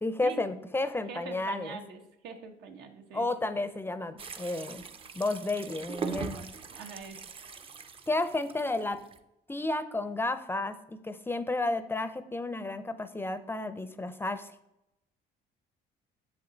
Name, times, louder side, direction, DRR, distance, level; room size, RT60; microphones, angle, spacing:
voice 1, 0.0-1.8 3.1-4.8 5.2-6.4 8.1-9.0 9.5-14.5, left 2 dB, 15° left, 12 dB, 0.5 m, -32 dB
voice 2, 1.1-3.3 6.2-7.2, right 5 dB, 80° right, 5 dB, 1.2 m, -44 dB
sound 1, 4.2-9.2, right 5 dB, 35° right, 0.6 m, -41 dB
7.4 x 7.1 x 3.9 m, 0.86 s
cardioid pair, 110°, 17 cm